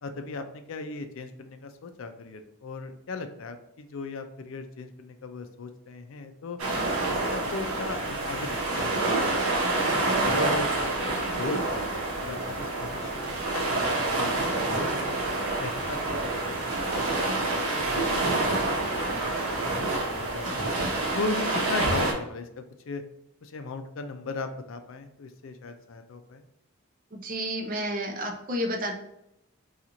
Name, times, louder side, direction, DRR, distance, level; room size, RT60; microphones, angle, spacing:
voice 1, 0.0-6.6 7.3-9.9 10.3-11.9 12.2-15.2 15.6-20.6 21.1-23.0 23.4-26.4, left 3 dB, 70° left, 7 dB, 0.4 m, -38 dB
sound 1, 6.6-22.1, right 2 dB, 85° right, 0.9 m, -27 dB
voice 2, 27.1-28.9, equal, 40° right, 3 dB, 0.5 m, -31 dB
2.9 x 2.4 x 3.8 m, 0.81 s
head